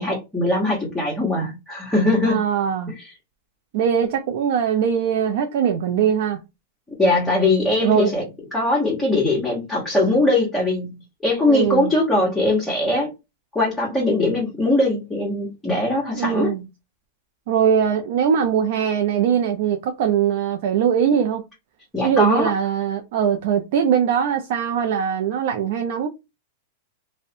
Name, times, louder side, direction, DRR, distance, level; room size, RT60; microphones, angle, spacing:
voice 1, 0.0-2.4 3.0-3.1 6.9-8.2 8.5-10.9 11.2-13.1 13.5-16.5 21.9-22.5, left 2 dB, 10° left, 1.0 m, -21 dB
voice 2, 2.3-3.0 3.7-6.4 7.8-8.1 11.4-11.9 16.1-16.7 17.5-21.4 22.0-26.1, right 8 dB, 60° right, 0.4 m, -21 dB
2.5 x 2.1 x 2.6 m
hypercardioid pair, 125°, 0 cm